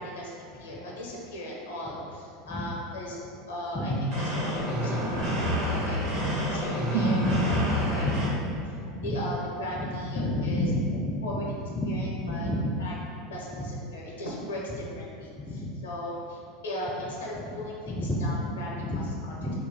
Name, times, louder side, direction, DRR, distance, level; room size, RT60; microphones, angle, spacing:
voice 1, 0.0-3.9 4.3-7.6 7.9-8.1 9.0-10.6 11.2-12.5 12.8-12.9 13.3-19.3, left 1 dB, 80° left, -3 dB, 0.7 m, -38 dB
sound 1, 4.1-8.2, equal, 65° right, 1.2 m, -29 dB
voice 2, 5.7-6.3 7.1-9.3 9.7-11.4 11.7-12.7 15.5-15.7 17.4-17.5 17.9-19.0 19.4-19.5, left 1 dB, 20° left, -3 dB, 0.4 m, -31 dB
sound 2, 6.9-10.9 11.2-11.3, right 3 dB, 45° right, 0.4 m, -33 dB
3.0 x 2.2 x 3.9 m, 2.4 s
hypercardioid pair, 85°, 0 cm